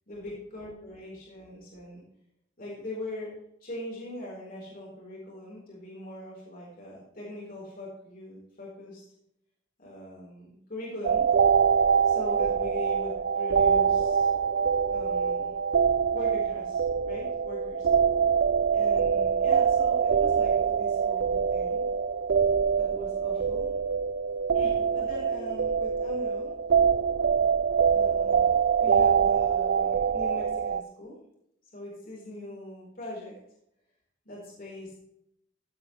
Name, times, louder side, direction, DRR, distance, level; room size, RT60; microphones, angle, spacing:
voice 1, 0.1-2.0 2.6-3.3 3.6-9.0 9.8-11.3 12.0-14.3 14.9-15.5 16.1-17.9 18.7-21.8 22.7-23.7 24.5-26.5 27.9-31.2 31.6-33.4 34.2-35.0, left 1 dB, 45° left, -5 dB, 4.3 m, -41 dB
sound 1, 11.0-30.8, right 6 dB, 50° right, 0.4 m, -24 dB
14.5 x 8.7 x 3.2 m, 0.78 s
head